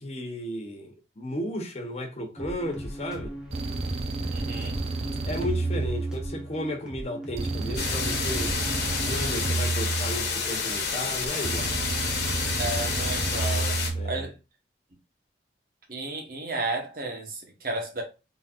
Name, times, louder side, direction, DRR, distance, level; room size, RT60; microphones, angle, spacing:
voice 1, 0.0-3.3 5.2-8.6 9.0-11.9 13.9-14.3, left 1 dB, 35° left, 0.7 m, -34 dB
sound 1, 2.4-9.2, equal, 5° right, 1.0 m, -38 dB
sound 2, 3.5-6.6 7.4-10.6 11.4-14.3, right 3 dB, 35° right, 0.5 m, -30 dB
voice 2, 4.3-4.8 12.6-13.8 14.0-14.3 15.9-18.0, right 2 dB, 50° right, 1.1 m, -33 dB
sound 3, 7.8-13.9, left 5 dB, 65° left, 1.2 m, -29 dB
4.0 x 3.8 x 2.4 m
head